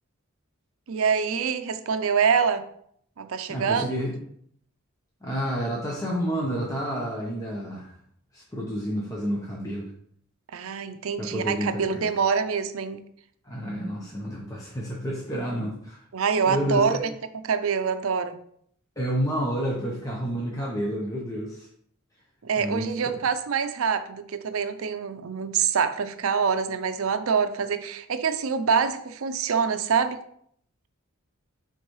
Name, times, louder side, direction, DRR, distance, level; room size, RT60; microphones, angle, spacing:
voice 1, 0.9-2.6 3.2-3.8 10.5-13.0 16.1-17.1 17.4-18.4 22.4-30.2, right 6 dB, 70° right, 10 dB, 0.5 m, -25 dB
voice 2, 3.5-4.2 5.2-7.9 8.3-9.9 11.2-12.1 13.4-16.0 16.4-17.0 19.0-21.7 22.5-23.2, equal, 15° left, -3 dB, 0.9 m, -30 dB
9.8 x 3.9 x 3.2 m, 0.66 s
head